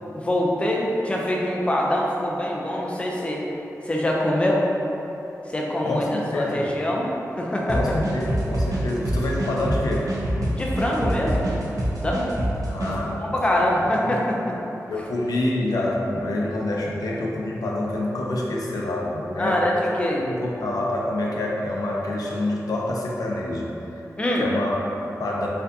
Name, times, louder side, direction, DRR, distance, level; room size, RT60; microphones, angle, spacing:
voice 1, 0.1-3.4 3.9-4.7 5.5-6.1 6.3-7.1 7.4-8.0 10.5-11.5 12.0-12.2 12.9-14.5 19.4-20.2 24.2-24.5, left 1 dB, 20° left, -2 dB, 0.4 m, -24 dB
voice 2, 5.8-6.7 7.7-10.1 12.7-13.2 13.5-13.8 14.0-14.2 14.9-19.6 20.2-24.0 24.3-25.5, left 1 dB, 85° left, -3 dB, 0.5 m, -27 dB
sound 1, 7.7-12.9, right 1 dB, 65° right, 0.7 m, -25 dB
4.2 x 2.6 x 2.6 m, 3.0 s
wide cardioid pair, 105°, 6 cm